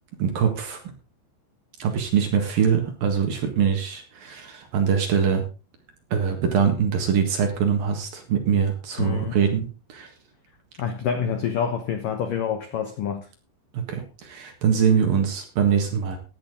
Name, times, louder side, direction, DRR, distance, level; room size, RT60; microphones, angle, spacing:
voice 1, 0.2-0.9 1.8-5.4 6.1-10.1 13.7-16.2, right 7 dB, 60° right, 2.8 m, -23 dB
voice 2, 9.0-9.4 10.8-13.3, left 7 dB, 85° left, 1.9 m, -27 dB
16.0 x 10.0 x 3.8 m
omnidirectional pair, 5.9 m